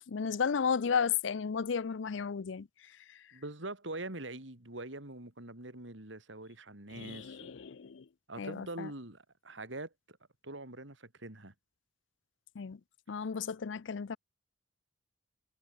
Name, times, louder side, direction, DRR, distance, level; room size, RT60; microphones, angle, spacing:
voice 1, 0.1-2.7 6.9-8.0 8.4-8.9 12.6-12.8 13.1-14.2, left 6 dB, 75° left, 0.5 m, -33 dB
voice 2, 3.3-7.5 8.3-10.2 10.4-11.5, right 2 dB, 75° right, 3.9 m, -44 dB
head